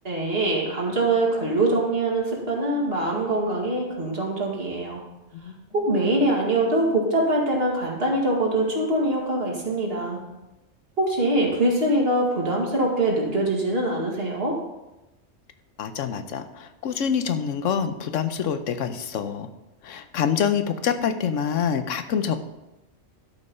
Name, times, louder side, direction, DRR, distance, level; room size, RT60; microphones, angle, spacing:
voice 1, 0.0-5.0 5.7-10.2 11.0-14.6, right 1 dB, 50° right, -2 dB, 2.4 m, -23 dB
voice 2, 15.8-19.5 19.8-22.4, left 7 dB, 80° left, 10 dB, 1.1 m, -26 dB
12.0 x 5.4 x 5.5 m, 0.98 s
omnidirectional pair, 1.3 m